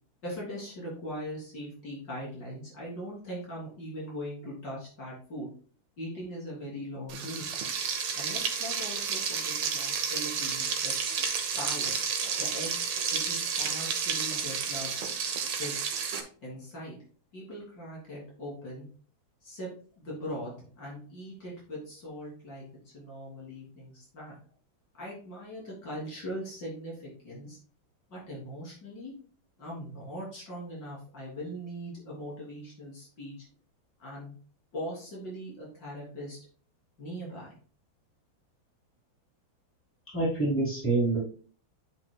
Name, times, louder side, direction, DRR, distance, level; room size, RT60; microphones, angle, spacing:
voice 1, 0.2-5.5 6.0-7.5 8.1-10.9 11.6-11.9 12.4-12.8 13.1-14.9 15.6-15.7 16.4-17.0 17.3-18.9 19.4-19.7 20.0-22.7 22.9-24.4 25.0-27.6 28.1-29.1 29.6-33.4 34.0-34.3 34.7-36.4 37.0-37.6, equal, 55° left, -6 dB, 3.7 m, -40 dB
Frying (food), 7.1-16.2, right 6 dB, 65° right, 1.5 m, -31 dB
voice 2, 40.1-41.2, right 3 dB, 5° left, -5 dB, 3.2 m, -26 dB
9.2 x 5.6 x 2.2 m, 0.43 s
omnidirectional pair, 2.2 m